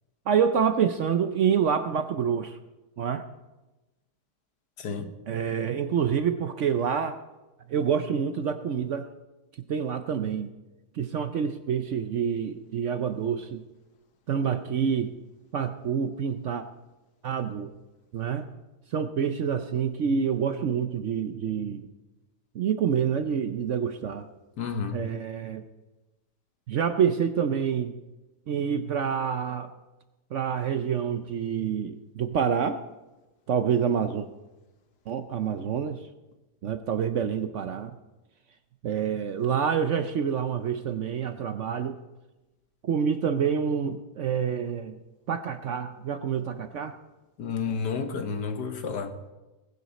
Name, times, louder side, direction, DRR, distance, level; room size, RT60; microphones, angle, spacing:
voice 1, 0.3-2.6 3.0-3.2 5.3-7.2 7.7-9.1 9.7-10.5 10.9-13.6 14.3-15.1 15.5-16.6 17.2-17.7 18.1-18.5 18.9-21.9 22.5-24.3 24.9-25.6 26.7-27.9 28.5-29.7 30.3-32.8 33.5-34.3 35.1-36.0 36.6-38.0 38.8-42.0 42.8-45.0 45.3-46.9, right 7 dB, 60° right, 0.8 m, -27 dB
voice 2, 4.8-5.1 24.6-25.0 47.4-49.1, left 5 dB, 80° left, 1.8 m, -31 dB
20.0 x 9.6 x 4.1 m
omnidirectional pair, 1.8 m